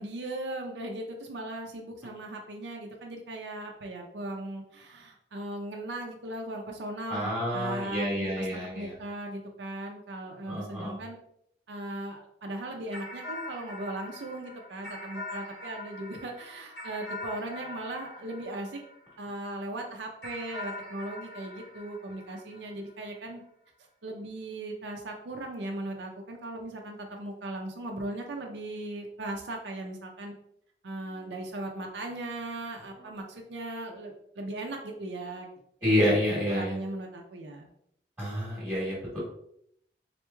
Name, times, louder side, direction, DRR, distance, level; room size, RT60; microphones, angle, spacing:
voice 1, 0.0-11.2 11.7-18.8 19.2-23.4 24.0-30.3 30.8-35.5 35.8-36.0 36.3-37.7, right 1 dB, 75° right, 2 dB, 0.5 m, -38 dB
voice 2, 7.1-8.9 10.5-10.9 35.8-36.7 38.2-39.2, equal, 10° right, -11 dB, 1.3 m, -28 dB
sound 1, 12.9-19.5 20.2-23.0, left 2 dB, 80° left, 1.4 m, -43 dB
4.1 x 3.0 x 2.2 m, 0.72 s
head